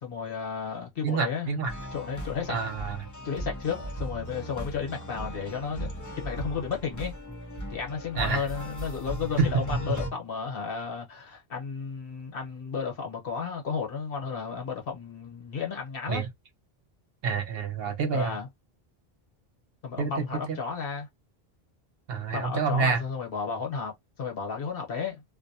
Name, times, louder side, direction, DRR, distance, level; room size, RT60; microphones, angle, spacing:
voice 1, 0.0-1.5 1.9-2.6 3.2-5.9 6.2-7.2 7.7-16.3 18.1-18.5 19.8-21.1 22.3-25.2, left 5 dB, 65° left, 1.2 m, -33 dB
voice 2, 1.0-1.7 2.5-3.0 8.2-8.4 9.4-9.5 16.1-16.3 17.2-18.4 20.0-20.1 22.1-23.0, right 5 dB, 70° right, 0.9 m, -27 dB
sound 1, 1.7-10.1, right 1 dB, 20° left, 0.8 m, -38 dB
2.6 x 2.1 x 2.6 m
omnidirectional pair, 1.1 m